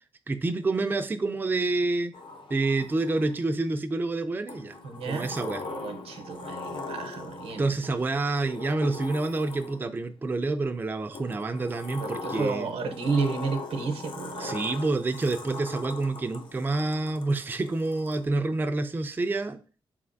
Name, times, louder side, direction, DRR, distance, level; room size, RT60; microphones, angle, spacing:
voice 1, 0.3-2.1 2.5-4.8 5.1-5.6 7.6-12.7 14.4-19.6, right 2 dB, 20° right, 7 dB, 0.3 m, -28 dB
Sliding door, 2.1-3.5 4.5-10.0 11.1-18.2, left 3 dB, 55° left, 0.6 m, -41 dB
voice 2, 4.8-7.7 12.0-14.6, right 4 dB, 80° right, 7 dB, 0.7 m, -32 dB
3.8 x 3.3 x 2.5 m, 0.37 s
cardioid pair, 75°, 10 cm